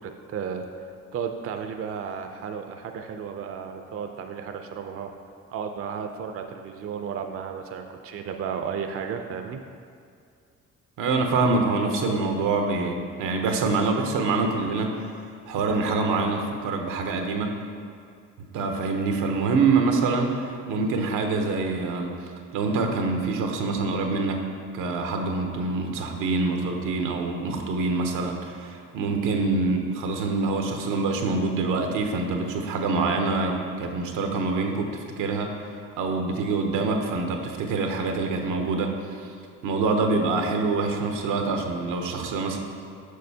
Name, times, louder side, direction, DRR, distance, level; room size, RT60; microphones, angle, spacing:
voice 1, 0.0-5.1 5.5-9.6, right 7 dB, 50° right, 5 dB, 0.4 m, -33 dB
voice 2, 11.0-14.9 15.5-17.5 18.5-22.1 22.5-24.4 24.7-35.5 36.0-38.9 39.2-39.3 39.6-42.6, right 3 dB, 90° right, 3 dB, 0.7 m, -25 dB
6.5 x 6.0 x 2.7 m, 2.3 s
cardioid pair, 90°, 30 cm